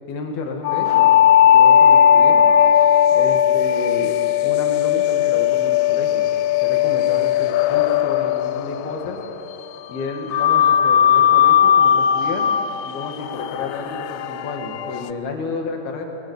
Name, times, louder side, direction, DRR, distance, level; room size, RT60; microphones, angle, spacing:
voice 1, 0.1-1.1 1.5-2.4 3.1-6.2 6.6-9.2 9.9-12.5 12.8-16.1, left 3 dB, 60° left, 2 dB, 4.1 m, -31 dB
sound 1, 0.7-9.4 10.3-15.1, left 9 dB, 85° left, 2.8 m, -17 dB
22.5 x 22.0 x 8.5 m, 2.9 s
omnidirectional pair, 5.1 m